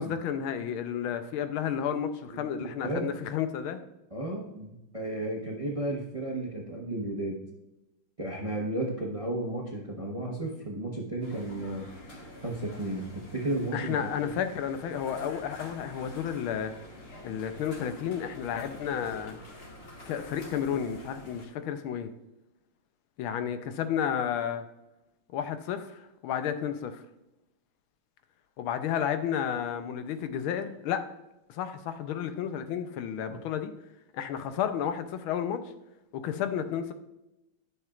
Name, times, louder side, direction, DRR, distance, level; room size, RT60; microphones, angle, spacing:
voice 1, 0.0-3.8 13.7-16.7 17.2-19.4 20.1-22.1 23.2-24.6 25.3-27.0 28.6-31.0 31.5-33.7 34.1-35.6 36.1-36.9, left 8 dB, 90° left, 9 dB, 1.5 m, -32 dB
voice 2, 2.3-3.1 4.1-7.4 8.2-11.8 12.4-13.9 33.3-33.4, right 1 dB, 35° right, -1 dB, 0.5 m, -33 dB
sound 1, 11.2-21.5, left 1 dB, 35° left, 1.3 m, -47 dB
10.5 x 6.4 x 2.4 m, 0.92 s
omnidirectional pair, 2.2 m